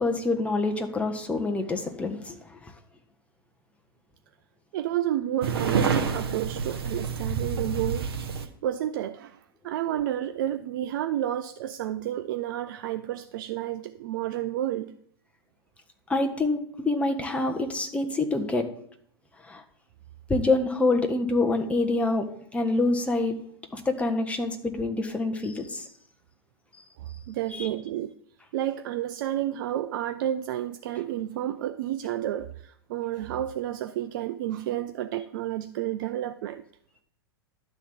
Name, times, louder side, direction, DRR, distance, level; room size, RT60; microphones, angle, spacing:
voice 1, 0.0-2.7 16.1-18.7 19.4-19.6 20.3-23.4 23.7-25.9 27.5-27.7, left 2 dB, 10° left, 1.3 m, -26 dB
voice 2, 4.7-14.9 27.0-28.1 28.5-36.6, right 12 dB, 55° right, 0.5 m, -31 dB
sound 1, 5.4-8.5, right 6 dB, 70° right, 1.3 m, -28 dB
11.5 x 4.0 x 7.5 m
hypercardioid pair, 105°, 13 cm